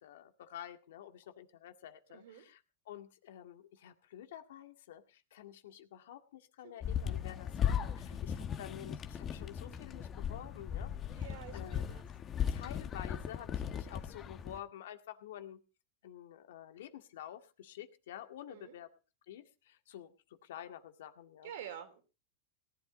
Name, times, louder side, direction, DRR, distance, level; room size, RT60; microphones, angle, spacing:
voice 1, 0.0-11.3 11.5-11.8 12.5-15.6 16.0-18.9 19.3-20.1 20.4-21.5, left 11 dB, 80° left, 7 dB, 2.0 m, -50 dB
voice 2, 2.1-2.5 6.6-6.7 11.1-12.1 18.5-18.7 21.4-22.0, right 9 dB, 75° right, 9 dB, 3.2 m, -48 dB
sound 1, 6.8-14.6, left 8 dB, 30° left, 1.3 m, -37 dB
18.5 x 11.5 x 4.0 m, 0.33 s
supercardioid pair, 125°, 0 cm